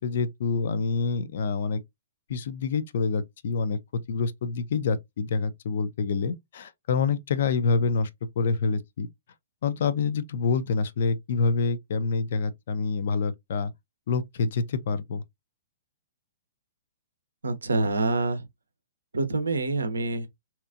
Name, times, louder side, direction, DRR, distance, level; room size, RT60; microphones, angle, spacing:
voice 1, 0.0-1.8 2.3-8.1 8.4-9.1 9.6-13.7 14.1-15.2, left 4 dB, 55° left, 0.4 m, -27 dB
voice 2, 17.4-18.5 19.1-20.3, right 2 dB, 80° right, 0.5 m, -26 dB
2.8 x 2.3 x 2.4 m
figure-of-eight pair, 120°, 0 cm